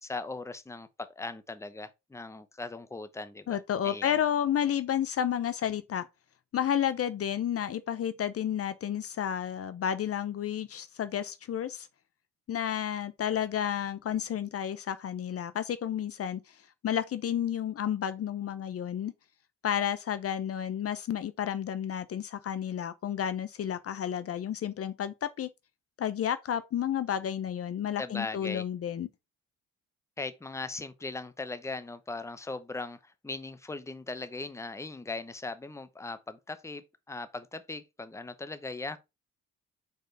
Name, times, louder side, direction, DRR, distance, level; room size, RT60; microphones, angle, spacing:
voice 1, 0.0-3.6 3.8-4.2 28.0-28.6 30.2-39.0, left 3 dB, 10° left, 0.8 m, -39 dB
voice 2, 3.5-6.1 6.5-11.9 12.5-16.6 16.8-19.1 19.6-25.5 26.0-29.1, left 9 dB, 50° left, 0.6 m, -31 dB
4.9 x 4.6 x 4.5 m
cardioid pair, 90°, 30 cm